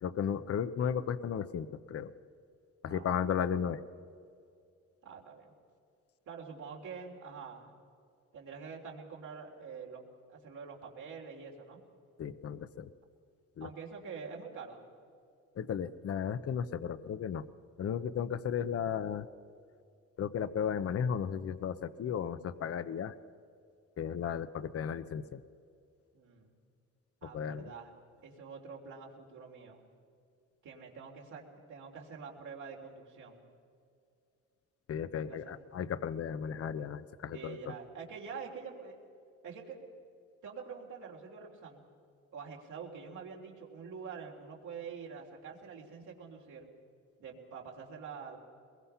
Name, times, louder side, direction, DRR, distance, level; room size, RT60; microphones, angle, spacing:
voice 1, 0.0-2.1 2.8-3.8 12.2-12.9 13.6-13.7 15.6-17.4 17.8-19.3 20.2-23.1 24.0-25.4 27.3-27.7 34.9-37.7, left 8 dB, 50° left, 13 dB, 0.9 m, -35 dB
voice 2, 5.0-5.5 6.3-7.7 8.3-11.8 13.6-14.8 26.1-26.5 27.2-27.9 28.2-29.8 30.6-33.4 35.1-35.6 37.3-39.0 39.4-39.8 40.4-41.8 42.3-46.7 47.2-48.4, right 5 dB, 75° right, -1 dB, 3.5 m, -46 dB
22.0 x 21.5 x 5.7 m, 2.4 s
cardioid pair, 90°, 30 cm